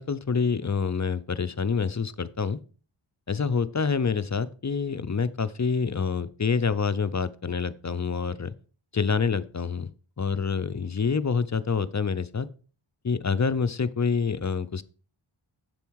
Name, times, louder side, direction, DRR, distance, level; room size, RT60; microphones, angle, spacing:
voice 1, 0.0-2.6 3.3-8.5 8.9-9.9 10.2-12.5 13.0-14.8, left 5 dB, 35° left, 14 dB, 0.5 m, -27 dB
7.8 x 7.1 x 4.6 m, 0.39 s
wide cardioid pair, 55°, 49 cm